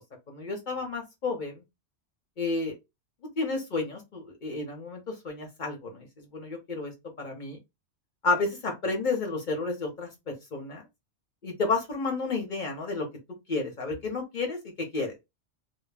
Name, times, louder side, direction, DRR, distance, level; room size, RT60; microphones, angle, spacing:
voice 1, 0.3-1.6 2.4-2.8 3.4-6.9 7.2-7.6 8.2-10.8 11.4-13.1 13.5-15.2, left 3 dB, 45° left, 0.8 m, -31 dB
2.2 x 2.1 x 3.2 m
omnidirectional pair, 1.2 m